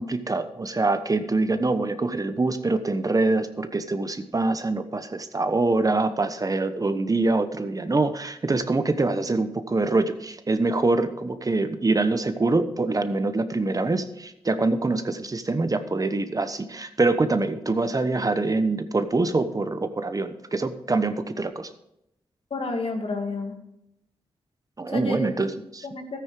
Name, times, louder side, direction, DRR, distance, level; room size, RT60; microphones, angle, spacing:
voice 1, 0.0-21.7 24.8-25.9, right 3 dB, 35° right, 10 dB, 1.1 m, -24 dB
voice 2, 22.5-23.6 24.9-25.5 25.8-26.2, left 3 dB, 65° left, 4 dB, 2.2 m, -30 dB
13.0 x 9.5 x 4.9 m, 0.82 s
cardioid pair, 50°, 10 cm